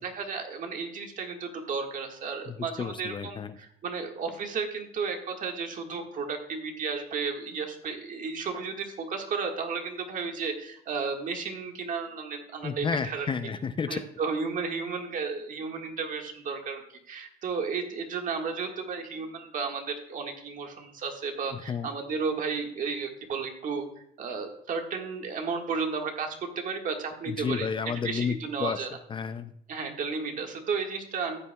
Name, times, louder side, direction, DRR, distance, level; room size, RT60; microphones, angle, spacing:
voice 1, 0.0-13.3 13.9-16.8 17.1-23.8 24.2-27.7 28.0-28.9 29.7-31.4, right 5 dB, 50° right, 3 dB, 1.6 m, -33 dB
voice 2, 2.5-3.5 12.6-14.0 21.5-21.9 27.3-28.8 29.1-29.5, left 6 dB, 30° left, 11 dB, 0.5 m, -31 dB
13.5 x 8.5 x 2.3 m, 0.71 s
cardioid pair, 110°, 17 cm